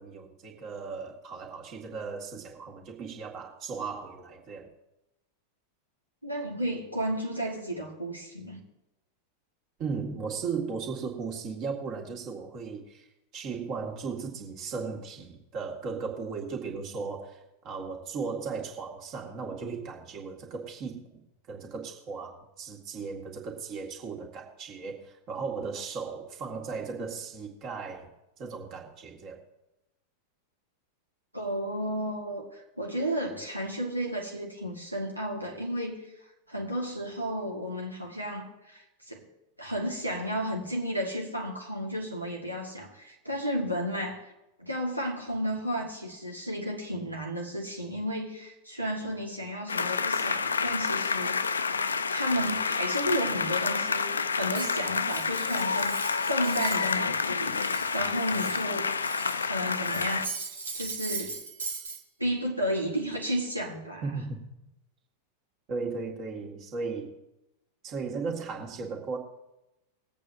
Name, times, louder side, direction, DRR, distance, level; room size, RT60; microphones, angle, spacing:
voice 1, 0.0-4.7 9.8-13.1 13.3-21.2 21.5-28.1 28.4-29.4 64.0-64.5 65.7-67.1 67.8-69.2, right 5 dB, 35° right, 1 dB, 2.0 m, -36 dB
voice 2, 6.2-8.6 31.3-36.1 36.5-39.2 39.6-44.2 44.6-51.6 52.1-58.9 59.4-60.3 60.7-61.4 62.2-64.0, equal, 90° right, -2 dB, 1.7 m, -33 dB
sound 1, 49.7-60.3, left 5 dB, 75° left, 0.4 m, -29 dB
Cutlery silverware, 54.5-57.0 57.3-59.4 59.8-62.0, right 4 dB, 70° right, 1.5 m, -39 dB
21.0 x 8.3 x 2.7 m, 0.93 s
figure-of-eight pair, 90°, 0 cm